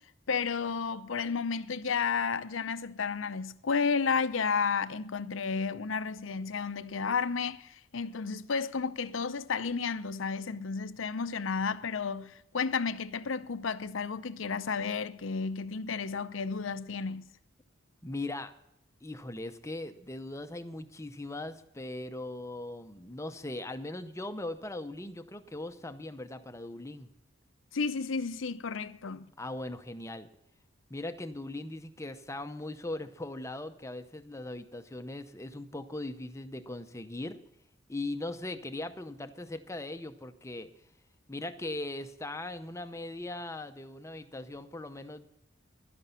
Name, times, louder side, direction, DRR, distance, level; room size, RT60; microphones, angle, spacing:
voice 1, 0.3-17.3 27.7-29.3, left 5 dB, 75° left, 0.6 m, -32 dB
voice 2, 18.0-18.5 19.0-27.1 29.4-30.3 30.9-37.4 37.9-40.7 41.3-45.3, left 2 dB, 15° left, 0.7 m, -39 dB
12.0 x 11.0 x 5.6 m
head